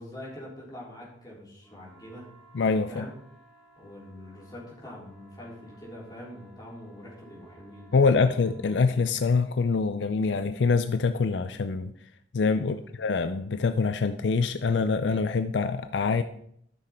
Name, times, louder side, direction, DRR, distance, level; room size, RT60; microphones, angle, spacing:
voice 1, 0.0-2.3 2.9-3.1 3.7-8.2 8.5-8.6 12.6-12.8, left 1 dB, 20° left, -5 dB, 3.5 m, -44 dB
sound 1, 1.6-8.8, right 2 dB, ahead, 3.0 m, -58 dB
voice 2, 2.5-3.1 7.9-11.9 12.3-16.2, left 4 dB, 70° left, 10 dB, 0.5 m, -25 dB
13.0 x 6.4 x 4.4 m, 0.69 s
head